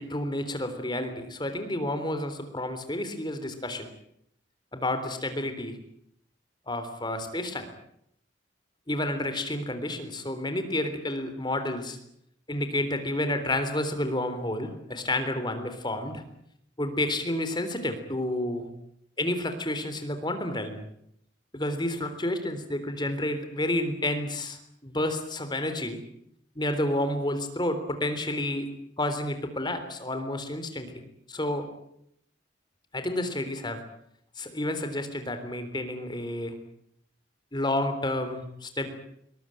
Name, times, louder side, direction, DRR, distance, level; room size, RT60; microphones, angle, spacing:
voice 1, 0.0-3.9 4.7-5.8 6.7-7.7 8.9-12.0 12.5-16.2 16.8-18.7 19.2-20.8 21.5-26.0 26.6-28.7 29.0-31.0 31.3-31.7 32.9-33.8 34.4-36.6 37.5-38.9, left 1 dB, 25° left, 8 dB, 3.7 m, -30 dB
22.5 x 21.5 x 9.2 m, 0.73 s
head